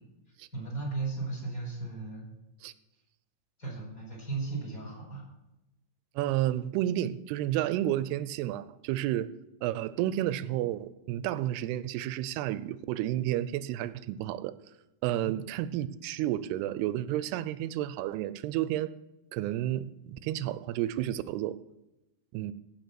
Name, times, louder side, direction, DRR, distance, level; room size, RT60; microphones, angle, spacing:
voice 1, 0.5-2.2 3.6-5.2 15.2-15.3, right 3 dB, 20° left, -4 dB, 5.0 m, -36 dB
voice 2, 6.2-9.3 9.6-14.5 15.0-18.9 19.3-21.6 22.3-22.5, right 13 dB, 85° right, 16 dB, 2.6 m, -31 dB
15.5 x 5.9 x 7.6 m, 0.93 s
omnidirectional pair, 4.6 m